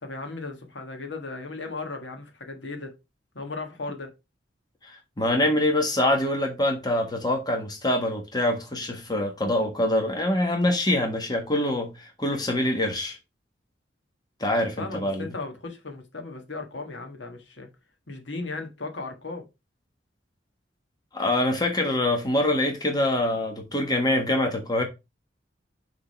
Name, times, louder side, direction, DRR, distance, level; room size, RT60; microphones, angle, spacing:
voice 1, 0.0-3.0 3.3-4.1 14.8-17.7 18.1-19.5, left 3 dB, 75° left, 1.5 m, -36 dB
voice 2, 5.2-13.2 14.4-15.3 21.1-24.8, left 1 dB, 20° left, 1.4 m, -25 dB
6.4 x 3.7 x 4.5 m
head